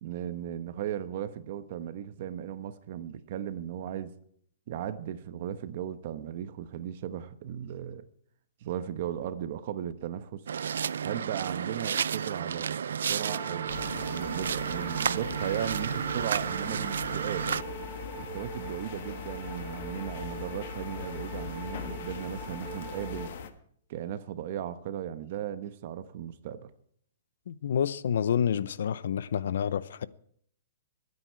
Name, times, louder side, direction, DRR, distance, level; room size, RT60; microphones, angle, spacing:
voice 1, 0.0-4.1 4.7-8.1 8.6-10.4 11.0-13.7 14.1-17.5 18.2-23.3 23.9-26.7, right 10 dB, 40° right, 1.0 m, -36 dB
sound 1, 10.5-17.6, right 7 dB, 90° right, 0.4 m, -32 dB
sound 2, 13.2-23.3, right 4 dB, 10° right, 5.8 m, -44 dB
sound 3, 13.7-23.5, left 7 dB, 50° left, 1.5 m, -41 dB
voice 2, 27.5-30.1, left 8 dB, 65° left, 0.7 m, -28 dB
22.0 x 9.7 x 4.7 m
hypercardioid pair, 170°, 0 cm